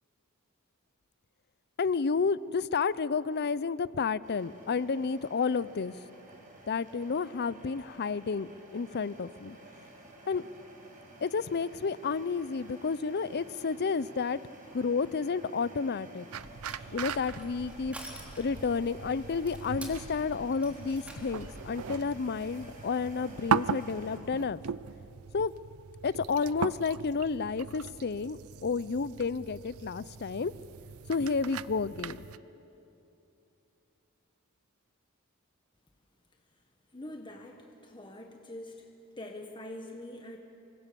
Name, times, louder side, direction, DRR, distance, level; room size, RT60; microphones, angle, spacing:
voice 1, 1.8-5.9 6.7-9.6 10.3-10.5 11.2-14.4 14.7-16.3 16.9-18.0 18.4-24.6 25.3-25.5 26.0-30.5 31.1-32.2, left 5 dB, 50° left, 18 dB, 0.6 m, -31 dB
sound 1, 4.2-24.2, right 1 dB, 40° right, 5.3 m, -52 dB
sound 2, 16.3-32.4, right 6 dB, 75° right, 0.5 m, -39 dB
Crushing, 16.6-21.6, equal, 5° right, 3.4 m, -48 dB
voice 2, 36.9-38.9 39.2-40.4, left 1 dB, 20° left, 3 dB, 1.5 m, -44 dB
28.0 x 24.0 x 6.9 m, 2.9 s
head